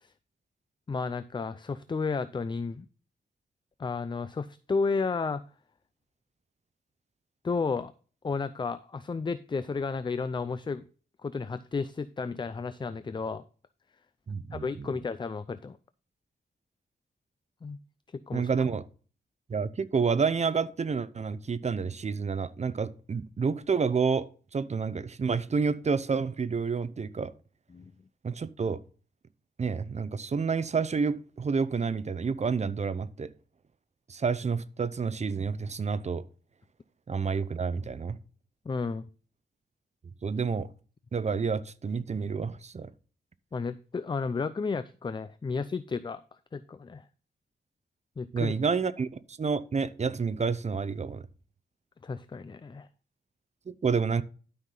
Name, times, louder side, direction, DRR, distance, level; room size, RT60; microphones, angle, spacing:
voice 1, 0.9-2.9 3.8-5.4 7.4-7.9 8.2-10.8 11.2-13.4 14.5-15.8 17.6-17.8 18.3-18.5 27.7-27.9 38.7-39.1 43.5-46.2 46.5-47.0 48.2-48.5 52.0-52.9, left 4 dB, 25° left, 0.4 m, -32 dB
voice 2, 14.3-14.9 18.3-18.8 19.5-27.3 28.2-28.8 29.6-33.3 34.1-36.2 37.1-38.2 40.2-40.7 41.1-42.9 48.3-51.2 53.7-54.2, right 5 dB, 40° right, 0.7 m, -29 dB
12.0 x 5.8 x 3.8 m
wide cardioid pair, 110°, 18 cm